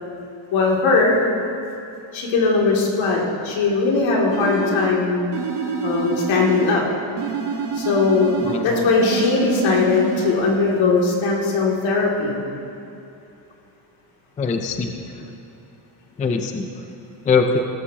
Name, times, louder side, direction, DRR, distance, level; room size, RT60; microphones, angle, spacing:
voice 1, 0.5-1.2 2.1-5.3 5.8-6.8 7.7-8.3 8.6-12.4, left 4 dB, 75° left, -2 dB, 2.6 m, -19 dB
sound 1, 4.3-5.0 5.3-6.8 7.2-8.7 9.0-10.3, right 5 dB, 55° right, 1.3 m, -27 dB
voice 2, 8.4-8.9 14.4-15.3 16.2-16.6 17.3-17.6, left 5 dB, 20° left, 5 dB, 0.3 m, -22 dB
17.0 x 13.5 x 2.8 m, 2.7 s
cardioid pair, 180°, 48 cm